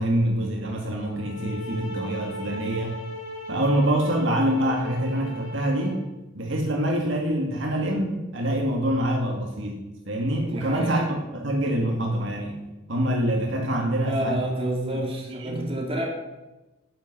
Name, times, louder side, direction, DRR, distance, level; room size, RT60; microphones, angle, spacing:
voice 1, 0.0-3.0 3.5-6.0 6.3-12.6 12.9-14.4 15.3-15.7, right 1 dB, 70° right, 0 dB, 2.0 m, -25 dB
sound 1, 1.1-6.1, left 1 dB, 75° left, 3.8 m, -37 dB
voice 2, 10.4-11.1 13.9-16.0, right 1 dB, 30° right, -1 dB, 2.5 m, -29 dB
9.9 x 9.1 x 6.5 m, 1.1 s
head